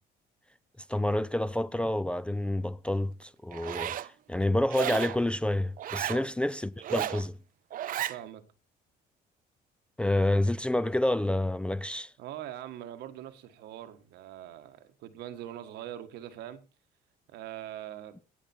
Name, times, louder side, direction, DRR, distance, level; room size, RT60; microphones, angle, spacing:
voice 1, 0.9-7.4 10.0-12.1, left 1 dB, 5° left, 0.5 m, -28 dB
Zipper (clothing), 3.5-4.1 4.7-5.2 5.8-6.2 6.8-7.2 7.7-8.2, right 12 dB, 55° right, 0.7 m, -33 dB
voice 2, 8.1-8.4 12.2-16.6 17.3-18.2, right 12 dB, 85° right, 1.6 m, -42 dB
17.5 x 6.8 x 4.4 m
cardioid pair, 110°, 17 cm